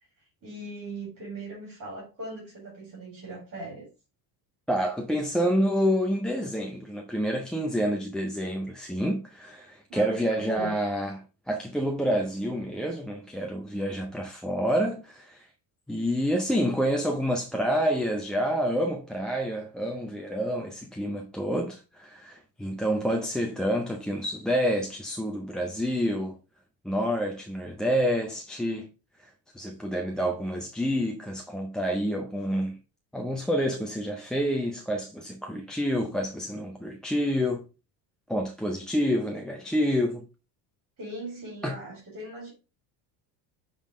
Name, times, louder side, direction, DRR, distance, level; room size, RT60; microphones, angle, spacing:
voice 1, 0.4-3.9 9.9-10.8 41.0-42.5, right 1 dB, 35° right, 3.7 m, -39 dB
voice 2, 4.7-11.2 11.5-15.5 15.9-26.4 26.8-28.9 29.2-32.8 33.1-37.6 38.3-40.2 41.6-41.7, equal, ahead, 0.5 m, -28 dB
7.1 x 3.8 x 4.8 m
cardioid pair, 145°, 42 cm